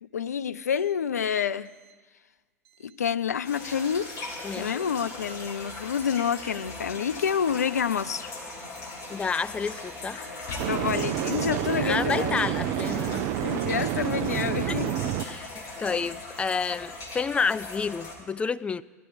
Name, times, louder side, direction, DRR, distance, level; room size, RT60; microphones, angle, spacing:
voice 1, 0.0-1.7 2.8-4.1 4.5-8.3 10.7-12.4 13.2-14.9 15.9-16.1, left 7 dB, 75° left, 0.5 m, -28 dB
sound 1, 3.4-18.1, left 3 dB, 40° left, 3.6 m, -39 dB
voice 2, 4.4-4.9 9.1-10.2 11.8-13.3 14.7-14.9 15.2-18.8, left 5 dB, 15° left, 0.4 m, -30 dB
sound 2, 5.7-5.9 10.6-15.2, right 11 dB, 45° right, 0.6 m, -29 dB
17.5 x 12.0 x 5.0 m
figure-of-eight pair, 85°, 9 cm